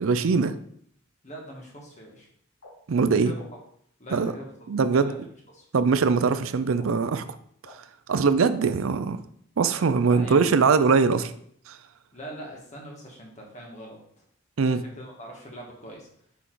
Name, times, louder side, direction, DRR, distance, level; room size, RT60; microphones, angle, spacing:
voice 1, 0.0-0.5 2.9-3.3 4.1-4.3 4.7-5.1 5.7-7.2 8.1-9.2 9.6-11.3 11.7-11.8 14.6-14.8, right 5 dB, 80° right, 11 dB, 0.5 m, -21 dB
voice 2, 1.2-2.3 3.2-3.4 4.0-4.5 4.9-5.2 5.5-5.6 10.1-10.7 12.1-14.2 14.6-16.1, right 1 dB, 35° left, -1 dB, 1.6 m, -42 dB
sound 1, 2.6-2.7 3.4-3.5 4.2-4.4 5.0-5.2 5.9-6.0 6.8-6.9 7.6-7.7 8.6-8.7 9.6-9.7, left 3 dB, 80° left, 1.6 m, -47 dB
5.7 x 4.7 x 3.9 m, 0.65 s
head